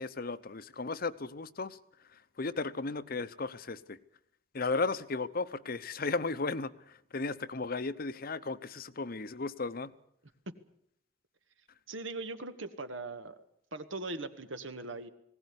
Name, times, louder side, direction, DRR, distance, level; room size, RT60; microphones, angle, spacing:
voice 1, 0.0-1.8 2.4-4.0 4.5-9.9, left 3 dB, 50° left, 0.8 m, -35 dB
voice 2, 11.9-13.4 13.7-15.1, right 2 dB, 80° right, 1.7 m, -40 dB
20.0 x 17.0 x 9.7 m
head